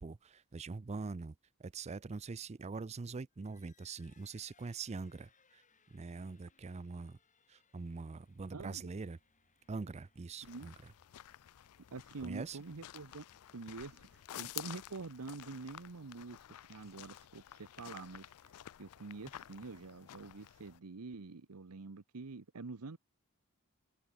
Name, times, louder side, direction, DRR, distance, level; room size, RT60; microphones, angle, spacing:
voice 1, 0.0-1.3 1.6-5.6 5.9-7.2 7.5-9.2 9.7-10.9 12.2-12.6, right 4 dB, 30° right, 0.4 m, -43 dB
sound 1, 3.3-16.7, left 5 dB, 35° left, 5.2 m, -73 dB
sound 2, 7.8-12.1, right 1 dB, 55° right, 4.5 m, -79 dB
voice 2, 8.5-8.8 10.4-10.7 11.9-13.3 13.5-18.5 18.8-23.0, right 3 dB, 85° right, 0.9 m, -47 dB
sound 3, 10.4-20.8, left 13 dB, 75° left, 0.4 m, -51 dB
head